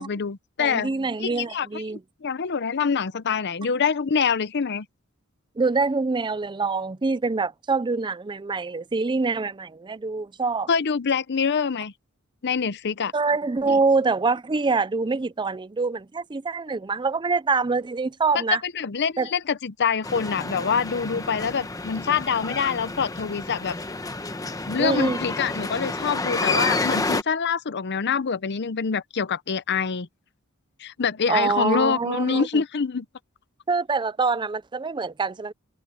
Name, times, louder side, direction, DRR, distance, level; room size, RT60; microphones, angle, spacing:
voice 1, 0.0-0.9 1.2-1.8 2.2-4.9 10.7-11.9 12.4-13.1 13.7-13.8 18.6-23.8 24.7-30.1 30.8-33.1, left 6 dB, 50° left, 0.7 m, -25 dB
voice 2, 0.6-2.0 5.6-10.7 13.1-18.6 19.2-19.3 24.8-25.2 31.3-32.6 33.7-35.5, right 4 dB, 20° right, 0.5 m, -25 dB
sound 1, 20.0-27.2, left 2 dB, 15° left, 0.9 m, -29 dB
head